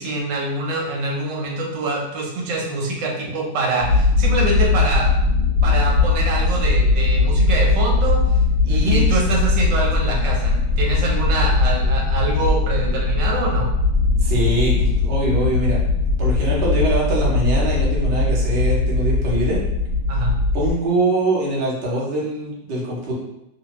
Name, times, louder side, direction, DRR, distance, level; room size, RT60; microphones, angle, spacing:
voice 1, 0.0-5.1 5.6-8.2 8.7-13.7 20.1-20.4, right 2 dB, 85° right, -1 dB, 1.3 m, -25 dB
sound 1, 3.8-20.7, left 3 dB, 75° left, 1.0 m, -19 dB
voice 2, 8.6-9.0 14.2-15.8 16.2-19.6 20.5-23.1, right 1 dB, 50° right, -5 dB, 0.8 m, -23 dB
2.6 x 2.6 x 2.9 m, 0.84 s
omnidirectional pair, 1.9 m